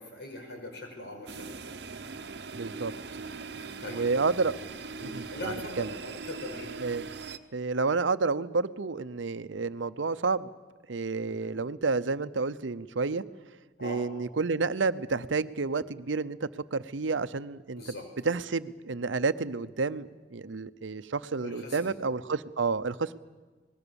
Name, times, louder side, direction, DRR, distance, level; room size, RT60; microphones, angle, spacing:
voice 1, 0.0-1.9 3.5-4.1 5.0-6.8 11.3-11.5 13.8-14.0 17.8-18.1 21.4-22.0, left 1 dB, 65° left, 2 dB, 5.4 m, -41 dB
sound 1, 1.3-7.4, right 4 dB, 60° right, 1.0 m, -41 dB
voice 2, 2.5-2.9 3.9-4.6 5.1-5.9 6.8-7.1 7.5-10.5 10.9-13.2 13.8-17.8 18.2-23.2, right 4 dB, 90° right, 14 dB, 0.7 m, -30 dB
26.5 x 20.0 x 7.1 m, 1.3 s
head